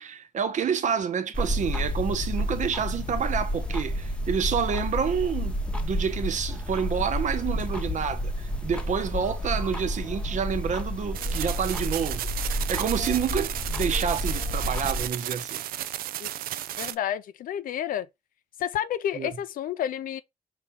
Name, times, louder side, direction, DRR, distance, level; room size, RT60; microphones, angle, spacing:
voice 1, 0.0-12.3 12.7-15.6 19.2-19.3, right 7 dB, 55° right, 0.9 m, -28 dB
sound 1, 1.3-15.1, equal, 5° left, 0.9 m, -30 dB
sound 2, 11.1-16.9, right 12 dB, 85° right, 0.4 m, -34 dB
voice 2, 16.8-18.1 18.6-20.2, left 10 dB, 70° left, 0.4 m, -30 dB
5.0 x 3.0 x 3.5 m
cardioid pair, 105°, 15 cm